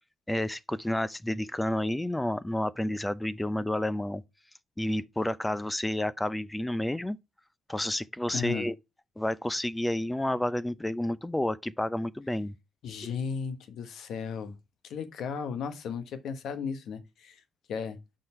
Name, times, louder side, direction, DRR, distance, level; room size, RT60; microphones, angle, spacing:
voice 1, 0.3-4.2 4.8-7.2 7.7-8.7 9.2-12.6, left 1 dB, 10° left, 0.5 m, -30 dB
voice 2, 8.3-8.7 12.8-14.6 14.8-17.4 17.7-18.0, left 6 dB, 75° left, 1.1 m, -35 dB
6.3 x 3.9 x 4.3 m
cardioid pair, 90°, 0 cm